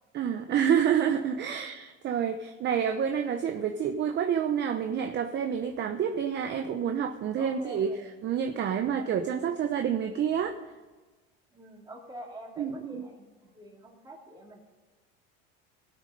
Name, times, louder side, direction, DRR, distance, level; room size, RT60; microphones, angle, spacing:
voice 1, 0.1-8.0 8.2-10.7 12.6-13.0, right 8 dB, 40° right, 6 dB, 0.8 m, -28 dB
voice 2, 7.4-8.1 8.7-9.3 11.5-14.6, right 1 dB, 15° right, -2 dB, 3.1 m, -46 dB
20.0 x 6.6 x 5.3 m, 1.3 s
supercardioid pair, 120°, 29 cm